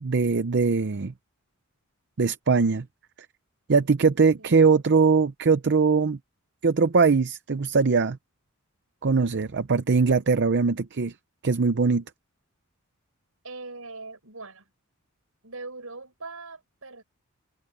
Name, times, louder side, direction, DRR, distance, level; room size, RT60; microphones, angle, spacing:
voice 1, 0.0-1.1 2.2-2.9 3.7-6.2 6.6-8.2 9.0-11.1 11.4-12.0, right 4 dB, 55° right, 0.6 m, -21 dB
voice 2, 13.4-14.7 15.4-17.0, right 3 dB, 70° right, 7.6 m, -41 dB
head